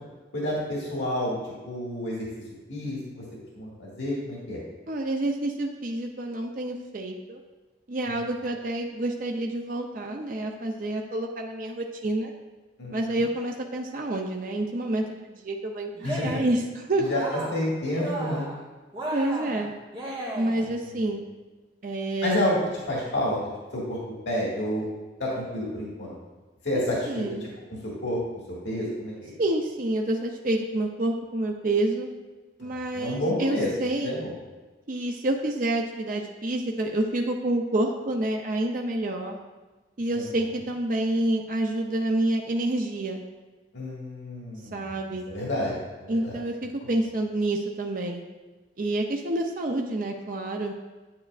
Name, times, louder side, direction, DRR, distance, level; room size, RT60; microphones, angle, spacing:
voice 1, 0.3-1.4 1.6-2.3 2.7-3.2 3.5-4.6 12.8-13.2 16.0-16.4 17.0-18.5 20.9-21.0 22.2-22.6 22.9-23.4 23.7-24.0 24.3-24.8 25.2-26.2 26.6-27.5 27.8-28.2 28.6-29.3 32.6-32.7 32.9-33.7 34.0-34.3 40.2-40.3 43.7-44.9 45.3-45.7 46.0-46.4, left 1 dB, 80° left, -5 dB, 1.9 m, -29 dB
voice 2, 4.9-7.4 7.9-12.3 12.9-17.0 19.1-19.7 20.3-21.2 21.8-22.4 26.7-27.5 29.4-32.1 32.6-34.1 34.9-39.4 40.0-43.2 44.7-45.3 46.1-48.2 48.8-50.7, right 1 dB, 45° right, 1 dB, 0.5 m, -28 dB
Cheering, 15.9-16.6 17.0-17.7 17.9-18.6 18.9-20.7, right 1 dB, 30° right, 1.6 m, -35 dB
8.8 x 8.6 x 2.4 m, 1.2 s
head